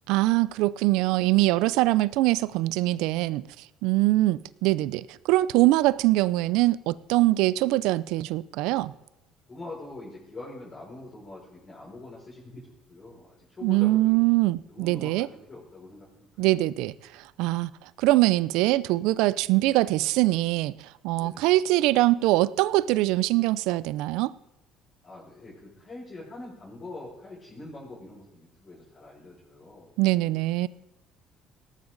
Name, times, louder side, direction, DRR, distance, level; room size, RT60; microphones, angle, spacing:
voice 1, 0.1-3.4 3.8-8.9 13.6-15.3 16.4-17.7 18.0-20.7 21.0-24.3 30.0-30.7, right 18 dB, 80° right, 0.5 m, -23 dB
voice 2, 9.5-14.3 14.7-16.3 21.1-21.5 25.0-29.9, left 2 dB, 30° left, 5.9 m, -44 dB
18.0 x 14.0 x 4.0 m
cardioid pair, 115°, 0 cm